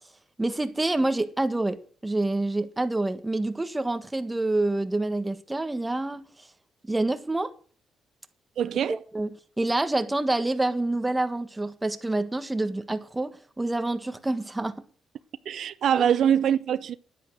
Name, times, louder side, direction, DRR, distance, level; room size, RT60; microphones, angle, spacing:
voice 1, 0.4-6.3 6.8-7.5 8.9-14.8 16.0-16.1, right 2 dB, 15° right, 1.6 m, -27 dB
voice 2, 8.6-8.9 15.5-16.9, right 9 dB, 65° right, 0.6 m, -23 dB
11.0 x 9.9 x 6.3 m
cardioid pair, 90°, 0 cm